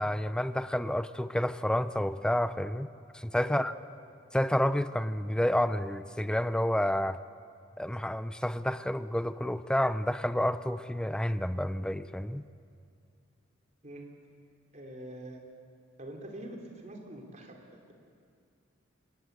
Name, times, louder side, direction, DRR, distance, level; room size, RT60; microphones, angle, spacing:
voice 1, 0.0-3.7 4.3-7.2 7.8-12.5, left 1 dB, 5° left, 13 dB, 0.5 m, -29 dB
voice 2, 3.3-3.7 13.8-14.1 14.7-15.4 16.0-17.9, right 1 dB, 40° right, 2 dB, 3.4 m, -45 dB
26.5 x 20.0 x 8.2 m, 2.3 s
head